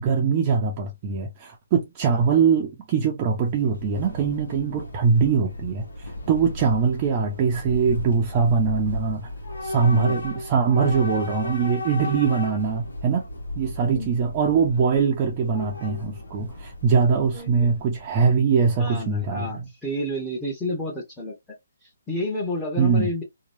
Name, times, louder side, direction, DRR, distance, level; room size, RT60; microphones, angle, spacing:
voice 1, 0.0-9.3 9.6-13.2 13.6-19.6 22.8-23.1, right 5 dB, 30° right, 0.6 m, -22 dB
Train / Subway metro underground, 3.3-18.1, left 1 dB, 80° left, 1.0 m, -36 dB
voice 2, 9.8-10.2 13.8-14.1 17.3-17.8 18.8-21.3 21.8-23.2, left 1 dB, 5° left, 1.1 m, -30 dB
3.0 x 2.3 x 2.7 m
hypercardioid pair, 150°, 0 cm